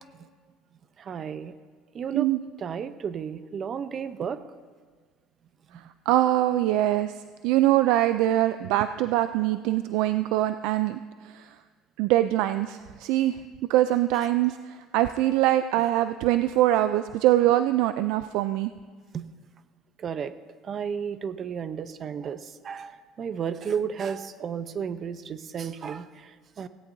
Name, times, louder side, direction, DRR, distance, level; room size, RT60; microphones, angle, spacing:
voice 1, 1.0-1.5 1.9-2.3 2.6-4.4 19.1-19.3 20.0-20.3 20.6-26.7, right 7 dB, 40° right, 12 dB, 0.7 m, -33 dB
voice 2, 6.1-7.1 7.4-11.0 11.3-11.4 12.0-13.3 13.7-14.6 14.9-18.7, right 14 dB, 80° right, 11 dB, 0.4 m, -23 dB
17.5 x 16.5 x 2.7 m, 1.5 s
cardioid pair, 115°, 0 cm